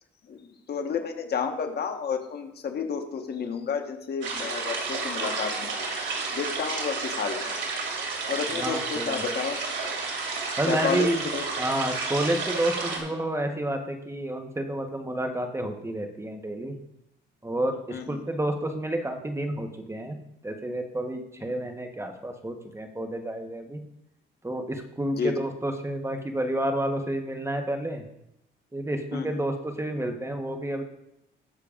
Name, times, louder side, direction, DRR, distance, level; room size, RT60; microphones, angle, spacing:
voice 1, 0.3-5.9 6.3-7.6 8.3-9.6 10.6-11.1 11.3-11.4 17.9-18.0 25.2-25.3 29.1-29.4, left 6 dB, 55° left, 4 dB, 1.3 m, -31 dB
sound 1, 4.2-13.0, right 4 dB, 70° right, 2.8 m, -31 dB
voice 2, 8.5-9.2 10.6-11.2 11.6-16.8 17.4-20.2 20.4-23.8 24.4-28.0 28.7-30.8, right 1 dB, 15° right, 4 dB, 1.1 m, -30 dB
20.0 x 6.7 x 2.5 m, 0.81 s
cardioid pair, 90°, 20 cm